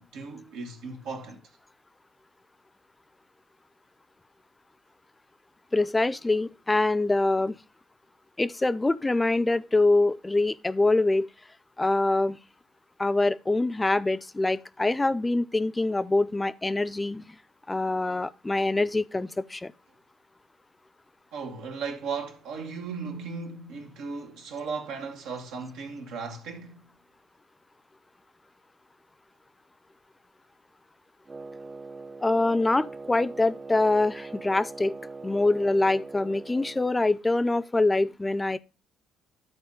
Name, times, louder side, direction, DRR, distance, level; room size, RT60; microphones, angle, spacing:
voice 1, 0.0-1.4 21.3-26.8, right 5 dB, 75° right, 1.5 m, -36 dB
voice 2, 5.7-7.6 8.4-11.3 11.8-12.4 13.0-17.4 17.7-19.7 32.2-35.0 35.2-38.6, left 2 dB, 20° left, 0.5 m, -24 dB
Wind instrument woodwind instrument, 31.3-37.0, right 3 dB, 30° right, 0.6 m, -42 dB
11.5 x 4.2 x 3.8 m
hypercardioid pair, 60°, 0 cm